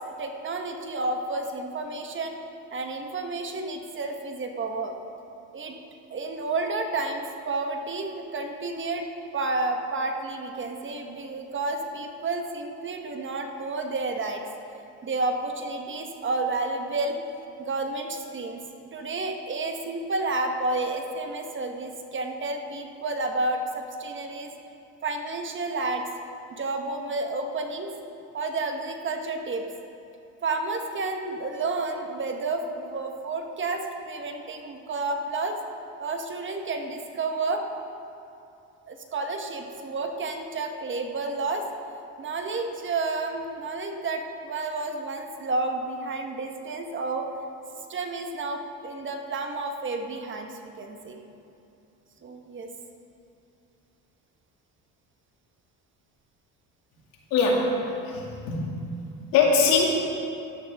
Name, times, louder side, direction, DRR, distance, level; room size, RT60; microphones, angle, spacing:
voice 1, 0.0-2.4 2.7-5.0 5.5-5.8 6.1-9.1 9.3-14.4 15.0-17.2 17.6-18.6 18.9-24.5 25.0-26.1 26.5-27.9 28.3-29.7 30.4-35.6 36.0-37.7 38.9-41.7 42.2-47.3 47.9-51.2 52.2-52.7, right 3 dB, 35° right, 4 dB, 1.1 m, -30 dB
voice 2, 57.3-57.8 58.0-58.7 59.3-59.9, left 4 dB, 85° left, -2 dB, 2.4 m, -21 dB
13.0 x 12.0 x 3.5 m, 2.7 s
cardioid pair, 110°, 34 cm